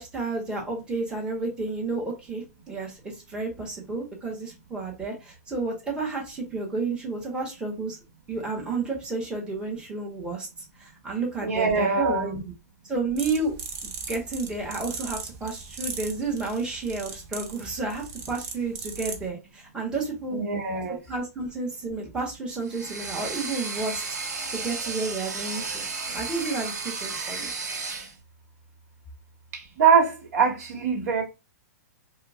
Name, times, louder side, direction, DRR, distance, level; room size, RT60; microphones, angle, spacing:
voice 1, 0.0-8.0 8.3-10.5 10.8-12.4 12.8-13.5 13.8-20.4 20.7-20.8 21.1-24.0 24.5-25.8 26.1-27.5, right 3 dB, 10° right, 1.1 m, -31 dB
voice 2, 11.4-12.4 20.3-21.0 29.5-31.2, right 6 dB, 70° right, 1.1 m, -23 dB
sound 1, 13.2-19.3, right 5 dB, 35° right, 0.7 m, -38 dB
sound 2, 22.6-28.1, right 4 dB, 85° right, 0.8 m, -33 dB
4.4 x 2.1 x 2.4 m
hypercardioid pair, 135°, 9 cm